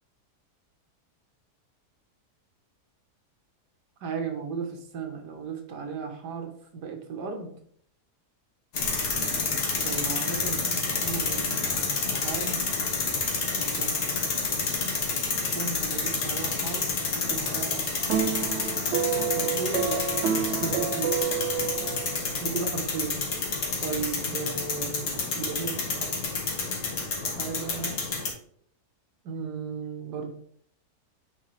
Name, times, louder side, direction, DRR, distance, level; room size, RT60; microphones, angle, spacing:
voice 1, 4.0-7.5 9.8-12.7 13.6-14.0 15.3-16.9 17.2-17.9 18.8-21.2 21.8-21.9 22.4-23.2 23.8-26.2 27.2-28.0 29.2-30.3, right 5 dB, 90° right, 5 dB, 1.7 m, -36 dB
sound 1, 8.7-28.3, left 4 dB, 80° left, 1.9 m, -29 dB
sound 2, 18.1-22.6, right 7 dB, 70° right, 0.6 m, -29 dB
9.1 x 4.6 x 3.2 m, 0.63 s
omnidirectional pair, 1.7 m